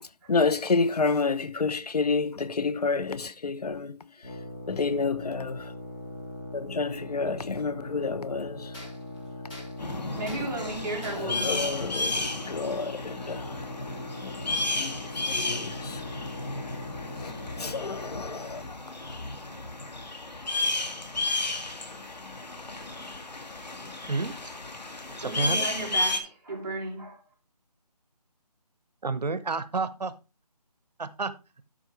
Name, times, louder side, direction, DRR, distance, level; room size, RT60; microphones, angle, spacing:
voice 1, 0.3-4.0 4.7-5.7 6.5-8.7 11.1-13.6 14.2-14.9 15.2-16.0 17.2-18.6, left 4 dB, 70° left, 0.7 m, -29 dB
sound 1, 2.3-2.8 4.1-4.2 6.3-6.4 7.2-7.3 8.7-11.4, left 1 dB, 10° left, 1.5 m, -49 dB
sound 2, 4.2-18.7, left 2 dB, 30° left, 1.9 m, -41 dB
sound 3, 9.8-26.2, left 2 dB, 85° left, 1.9 m, -33 dB
voice 2, 10.2-11.8 12.1-12.4 25.2-27.2, right 2 dB, 30° right, 2.5 m, -35 dB
voice 3, 25.2-25.7 29.0-30.2 31.0-31.3, right 3 dB, 80° right, 0.9 m, -30 dB
12.5 x 5.2 x 3.3 m
figure-of-eight pair, 175°, 21 cm